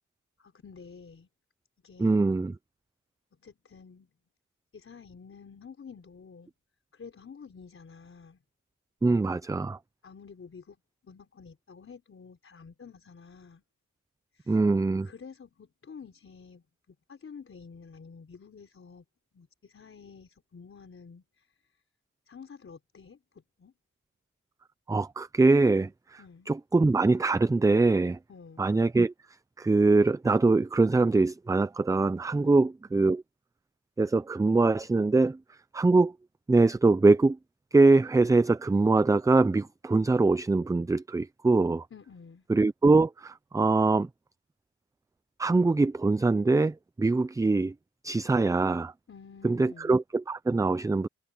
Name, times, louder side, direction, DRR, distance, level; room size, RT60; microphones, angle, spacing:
voice 1, 0.4-1.3 1.8-2.3 3.3-4.1 4.7-6.5 6.9-8.4 10.0-13.6 14.3-14.6 15.0-19.0 19.3-21.6 22.3-23.7 26.2-26.5 28.3-28.7 32.4-32.7 41.9-42.5 49.1-49.9, left 5 dB, 40° left, 4.4 m, -50 dB
voice 2, 2.0-2.5 9.0-9.8 14.5-15.1 24.9-26.2 26.5-28.2 28.6-29.1 29.6-33.2 34.0-36.1 36.5-37.4 37.7-41.9 42.5-44.1 45.4-47.7 48.0-48.9 49.4-51.1, right 3 dB, 10° right, 0.4 m, -23 dB
wide cardioid pair, 130°, 32 cm